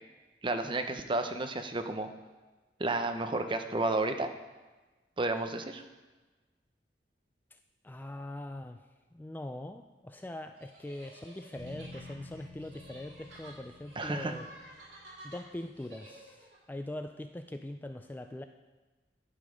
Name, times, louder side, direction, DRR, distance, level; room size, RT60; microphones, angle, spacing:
voice 1, 0.4-2.1 2.8-4.3 5.2-5.8 14.0-14.3, right 2 dB, 30° right, 7 dB, 0.7 m, -31 dB
voice 2, 7.8-8.8 9.1-14.5 15.2-18.5, left 1 dB, 10° left, 7 dB, 0.3 m, -42 dB
sound 1, 10.6-16.6, right 1 dB, 75° right, 4.0 m, -52 dB
sound 2, 11.6-15.7, left 2 dB, 5° right, 4.2 m, -51 dB
11.5 x 7.2 x 5.1 m, 1.2 s
head